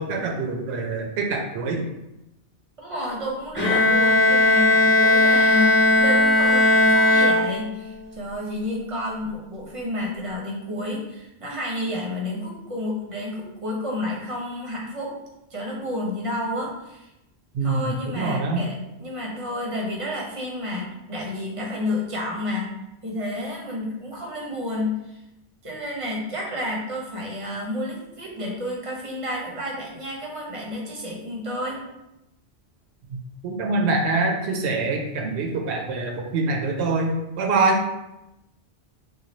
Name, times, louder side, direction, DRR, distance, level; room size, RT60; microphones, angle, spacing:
voice 1, 0.0-1.8 17.5-18.7 33.1-33.2 33.4-37.8, right 3 dB, 80° right, 1 dB, 0.8 m, -25 dB
voice 2, 2.8-15.1 15.5-17.1 17.6-22.7 23.0-25.2 25.6-31.8, left 1 dB, 35° right, -3 dB, 0.7 m, -30 dB
Bowed string instrument, 3.6-8.0, left 2 dB, 15° left, 0.4 m, -18 dB
3.1 x 2.1 x 4.0 m, 0.91 s
omnidirectional pair, 1.1 m